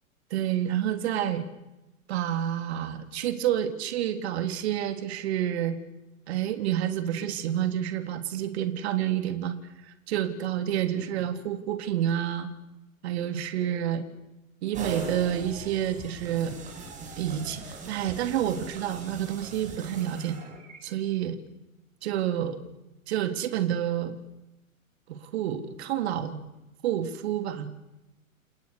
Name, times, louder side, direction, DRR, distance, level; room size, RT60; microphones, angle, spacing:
voice 1, 0.3-1.4 2.1-5.8 6.3-9.5 9.8-12.5 13.0-14.1 14.6-16.6 17.2-17.6 17.9-20.4 20.8-21.4 22.0-22.6 23.1-24.2 25.1-26.4 26.8-27.7, right 10 dB, 50° right, 8 dB, 3.4 m, -29 dB
sound 1, 14.7-20.8, right 4 dB, 15° right, 7.5 m, -41 dB
30.0 x 29.0 x 6.9 m, 0.95 s
figure-of-eight pair, 120°, 42 cm